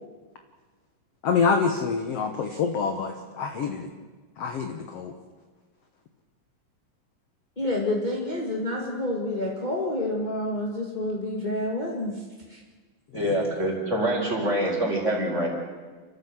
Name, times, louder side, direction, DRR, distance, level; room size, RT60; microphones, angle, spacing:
voice 1, 1.2-3.9 4.4-5.1 13.1-13.5, left 5 dB, 65° left, 6 dB, 1.6 m, -26 dB
voice 2, 7.6-12.2 12.5-12.6, left 1 dB, 25° left, -3 dB, 1.1 m, -28 dB
voice 3, 13.1-15.5, right 1 dB, 20° right, -1 dB, 4.5 m, -25 dB
29.0 x 13.5 x 7.6 m, 1.4 s
omnidirectional pair, 4.3 m